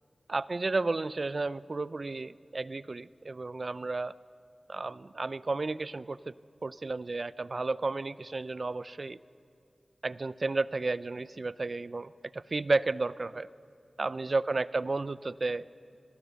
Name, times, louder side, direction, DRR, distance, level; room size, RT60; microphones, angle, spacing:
voice 1, 0.3-4.1 4.7-6.3 6.6-9.2 10.0-13.5 14.0-15.6, right 3 dB, 55° right, 17 dB, 0.5 m, -32 dB
26.0 x 19.0 x 6.9 m, 2.5 s
wide cardioid pair, 70°, 0 cm